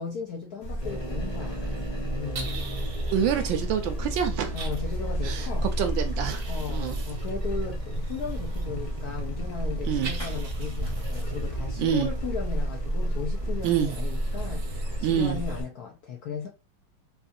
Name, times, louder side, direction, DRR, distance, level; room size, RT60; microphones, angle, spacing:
voice 1, 0.0-2.5 4.5-5.7 6.5-16.5, left 6 dB, 70° left, 0.9 m, -37 dB
Buzz, 0.6-15.6, right 1 dB, 45° left, 0.4 m, -33 dB
sound 1, 0.8-15.6, equal, 25° left, 0.9 m, -35 dB
sound 2, 2.3-3.2 4.5-4.8 6.3-8.6 10.0-11.7 13.6-15.7, right 5 dB, 60° right, 0.9 m, -44 dB
voice 2, 3.1-4.6 5.2-6.4 6.7-7.0 9.9-10.1 11.8-12.1 13.6-13.9 15.0-15.4, right 9 dB, 75° right, 1.2 m, -26 dB
4.2 x 2.3 x 2.6 m
omnidirectional pair, 2.3 m